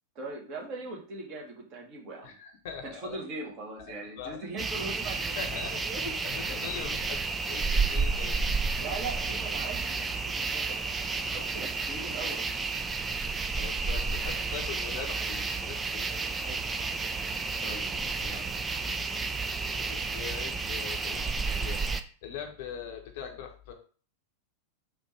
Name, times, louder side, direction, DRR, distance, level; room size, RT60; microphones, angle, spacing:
voice 1, 0.1-2.3 2.8-6.1 8.7-12.5 16.4-16.7 17.6-18.5, right 2 dB, 40° right, -1 dB, 1.6 m, -41 dB
voice 2, 2.2-3.2 3.8-4.5 5.1-5.8 6.2-8.8 13.5-16.3 17.6-18.4 19.8-23.7, left 7 dB, 50° left, 3 dB, 0.8 m, -42 dB
sound 1, 4.6-22.0, right 4 dB, 15° right, 0.4 m, -31 dB
4.3 x 2.7 x 4.4 m, 0.41 s
figure-of-eight pair, 90°, 0 cm